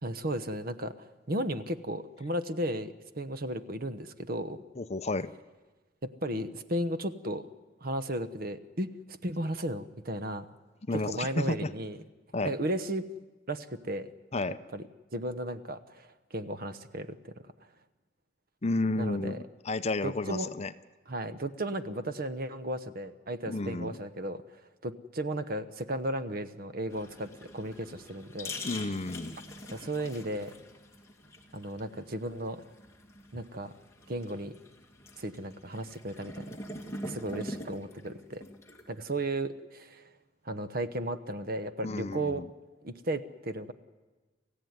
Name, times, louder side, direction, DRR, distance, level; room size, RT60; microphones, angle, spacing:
voice 1, 0.0-4.6 6.0-7.5 7.8-10.5 10.9-12.0 12.4-13.0 13.5-14.1 14.7-14.8 15.1-17.3 19.0-19.4 20.0-20.5 21.1-24.4 24.8-28.5 29.7-30.5 31.5-32.6 33.3-33.7 34.1-34.6 35.2-36.5 37.0-38.4 38.9-40.0 40.4-42.4 42.8-43.7, right 1 dB, 50° right, 12 dB, 1.0 m, -35 dB
voice 2, 4.8-5.3 10.9-11.7 12.3-12.5 14.3-14.6 18.6-20.7 23.5-24.0 28.6-29.4 41.8-42.5, left 2 dB, 35° left, 12 dB, 0.7 m, -32 dB
sound 1, 26.9-39.1, left 1 dB, 15° left, 2.2 m, -44 dB
28.0 x 15.0 x 9.5 m, 1.2 s
head